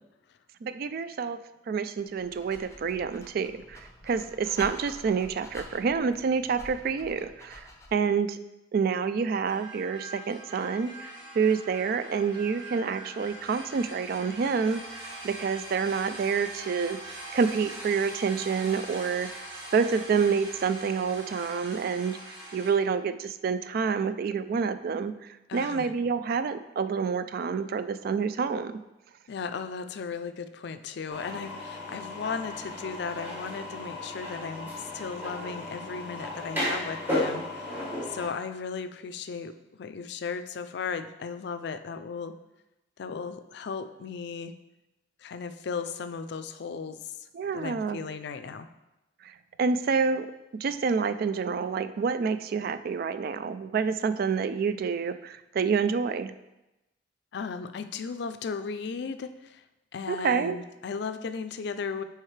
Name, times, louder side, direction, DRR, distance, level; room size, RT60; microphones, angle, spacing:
voice 1, 0.6-1.4 1.7-8.4 8.7-14.8 15.2-17.0 17.3-19.3 19.7-22.2 22.5-28.7 47.3-48.0 49.2-50.3 50.6-56.3 60.1-60.6, right 5 dB, 55° right, 12 dB, 0.3 m, -28 dB
Dog, 2.0-8.1, left 1 dB, 15° left, 0.7 m, -48 dB
sound 1, 9.4-22.7, right 1 dB, 75° right, 2.1 m, -42 dB
voice 2, 25.5-25.9 29.3-37.8 38.1-39.5 39.8-42.4 43.0-44.5 45.2-47.0 47.5-48.7 57.3-59.6 59.9-62.0, left 5 dB, 65° left, 10 dB, 0.4 m, -36 dB
sound 2, 31.1-38.3, left 1 dB, 10° right, 1.8 m, -34 dB
7.5 x 4.7 x 3.2 m, 0.97 s
head